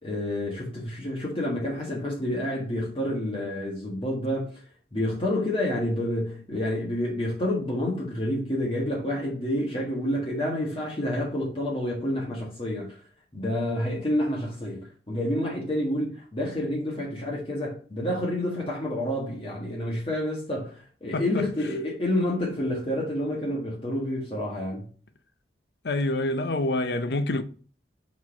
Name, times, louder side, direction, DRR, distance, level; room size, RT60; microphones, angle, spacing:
voice 1, 0.0-4.6 4.9-13.0 13.3-24.9, left 1 dB, 30° left, 1.6 m, -29 dB
voice 2, 25.8-27.4, left 2 dB, 65° left, 0.6 m, -26 dB
4.6 x 4.1 x 5.7 m
head